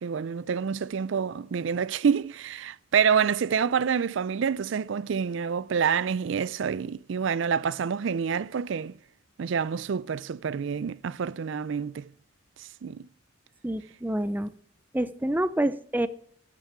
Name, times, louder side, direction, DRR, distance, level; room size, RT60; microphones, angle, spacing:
voice 1, 0.0-9.0 9.4-12.1 12.8-13.0, right 6 dB, 65° right, 0.4 m, -27 dB
voice 2, 13.6-14.5 14.9-16.1, right 1 dB, 10° right, 0.5 m, -27 dB
14.0 x 6.8 x 6.0 m
head